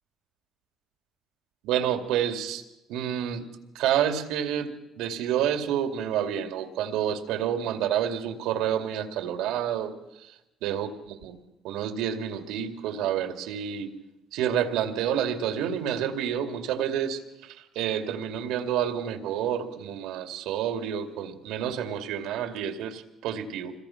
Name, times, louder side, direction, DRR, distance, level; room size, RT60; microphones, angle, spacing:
voice 1, 1.6-3.4 3.7-9.9 10.2-10.3 10.6-11.4 11.6-13.9 14.3-23.7, right 9 dB, 80° right, 7 dB, 2.4 m, -29 dB
26.5 x 21.5 x 5.9 m, 0.95 s
cardioid pair, 115°, 0 cm